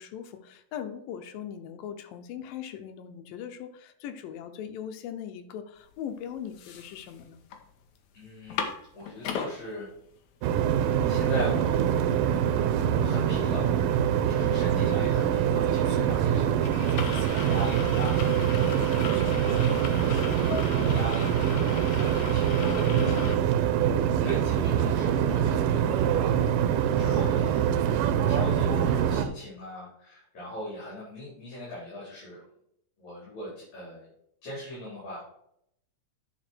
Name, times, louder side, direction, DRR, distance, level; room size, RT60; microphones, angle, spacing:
voice 1, 0.0-7.4 14.4-15.0 22.9-23.5, left 9 dB, 90° left, 8 dB, 2.6 m, -40 dB
sound 1, 5.9-6.0 6.4-7.6 8.0-8.1 8.3-9.5 10.1-10.2 10.5-23.4, left 6 dB, 70° left, 2.1 m, -38 dB
voice 2, 8.1-8.7 8.9-9.9 11.0-11.8 12.9-13.8 14.3-16.7 17.2-18.3 19.1-21.3 21.6-23.3 24.2-26.1 26.8-32.4 33.0-34.1 34.4-35.2, left 1 dB, 55° left, -9 dB, 5.2 m, -39 dB
sound 2, 10.4-29.3, right 9 dB, 80° right, 2.4 m, -24 dB
10.5 x 4.8 x 4.4 m, 0.74 s
omnidirectional pair, 3.9 m